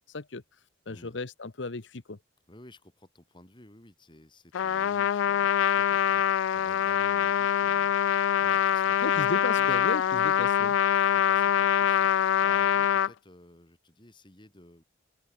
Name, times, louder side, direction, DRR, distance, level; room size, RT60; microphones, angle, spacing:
voice 1, 0.1-0.4 0.9-2.2 9.0-10.8, left 3 dB, 75° left, 1.1 m, -35 dB
voice 2, 0.9-1.2 2.5-9.7 10.9-14.8, left 1 dB, 25° left, 3.1 m, -54 dB
Trumpet, 4.5-13.1, left 9 dB, 90° left, 0.3 m, -24 dB
head